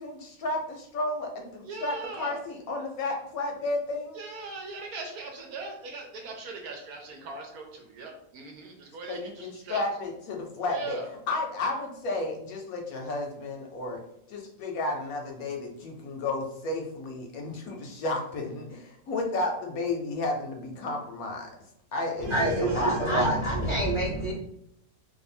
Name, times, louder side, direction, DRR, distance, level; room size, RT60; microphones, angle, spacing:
voice 1, 0.0-4.2 9.1-11.0 11.3-14.0 14.3-21.5 21.9-23.4, left 2 dB, 70° left, 1 dB, 0.9 m, -32 dB
voice 2, 1.6-2.4 4.2-9.8 10.7-11.1 22.2-22.9, right 4 dB, 70° right, 2 dB, 1.0 m, -40 dB
voice 3, 22.2-24.3, right 1 dB, 30° right, -5 dB, 0.5 m, -26 dB
2.6 x 2.4 x 4.2 m, 0.74 s
omnidirectional pair, 1.8 m